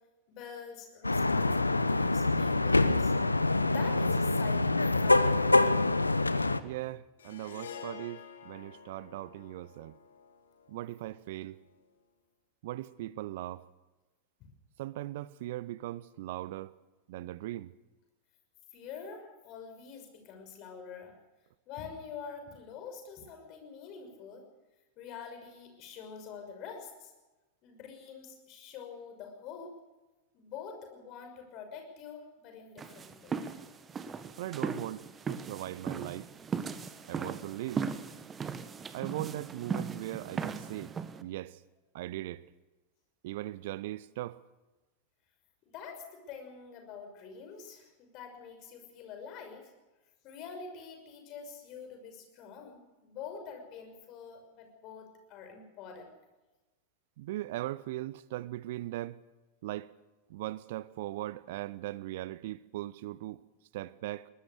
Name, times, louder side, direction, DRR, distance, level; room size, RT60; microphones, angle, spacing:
voice 1, 0.3-3.1 3.6-5.8 14.4-14.5 18.7-21.1 21.7-24.4 25.0-27.1 27.6-29.8 30.3-33.4 45.7-49.7 50.2-56.1, left 6 dB, 40° left, 6.0 m, -46 dB
sound 1, 1.0-6.6, left 2 dB, 80° left, 0.9 m, -25 dB
voice 2, 6.6-9.9 10.7-11.6 12.6-13.6 14.8-16.7 17.1-17.7 34.4-36.3 37.1-37.8 38.9-40.9 41.2-41.6 41.9-42.4 43.2-44.4 57.2-59.2 59.6-59.9 60.3-63.4 63.7-64.3, right 15 dB, 55° right, 0.7 m, -39 dB
Harp, 7.2-11.6, left 6 dB, 65° left, 2.6 m, -49 dB
sound 2, 32.8-41.2, right 6 dB, 20° right, 1.4 m, -38 dB
22.5 x 19.0 x 6.6 m
figure-of-eight pair, 90°, 0 cm